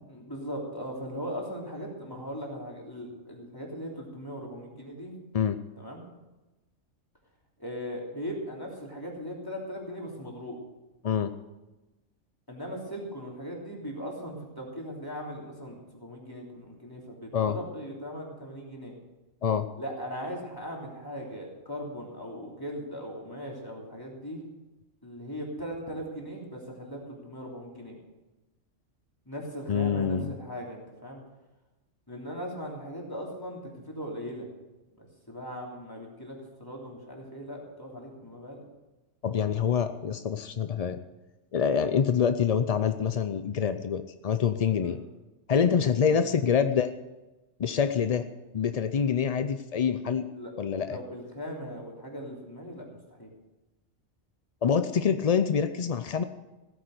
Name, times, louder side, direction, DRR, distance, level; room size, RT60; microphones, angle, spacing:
voice 1, 0.1-5.1 5.8-6.0 7.6-10.6 12.5-18.9 19.8-24.4 25.0-28.0 29.2-31.2 32.1-33.6 33.9-34.5 35.0-38.6 44.8-45.0 46.1-46.2 50.3-50.5 50.9-53.3, equal, 15° left, -2 dB, 3.2 m, -39 dB
voice 2, 29.7-30.3 39.2-41.0 41.5-45.0 45.5-46.9 47.6-48.3 48.5-50.3 50.6-51.0 54.6-56.2, left 7 dB, 55° left, 10 dB, 0.4 m, -26 dB
16.0 x 9.3 x 6.6 m, 1.1 s
omnidirectional pair, 1.4 m